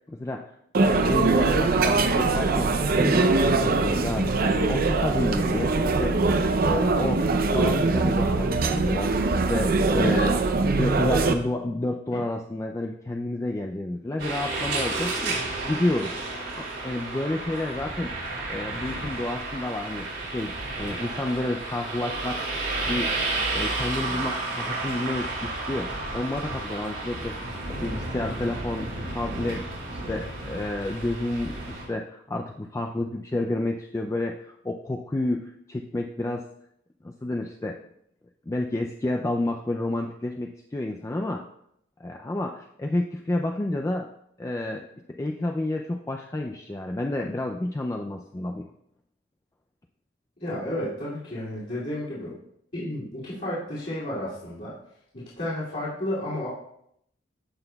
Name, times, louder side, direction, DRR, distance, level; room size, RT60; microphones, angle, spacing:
voice 1, 0.1-0.5 0.8-2.7 2.9-6.2 6.6-7.2 7.5-9.1 9.5-16.1 16.5-18.1 18.5-22.4 22.9-23.1 23.5-27.3 27.7-29.6 29.9-36.5 37.0-37.8 38.5-41.4 42.0-44.1 44.4-44.8 45.1-48.7, left 2 dB, 15° left, 2 dB, 0.3 m, -30 dB
sound 1, 0.7-11.3, right 3 dB, 50° right, 0.5 m, -22 dB
sound 2, 14.2-31.8, right 2 dB, 80° right, 3.4 m, -32 dB
voice 2, 50.4-52.3 52.7-54.7 55.1-56.5, left 1 dB, 50° left, -11 dB, 2.5 m, -32 dB
14.5 x 5.9 x 2.3 m, 0.74 s
head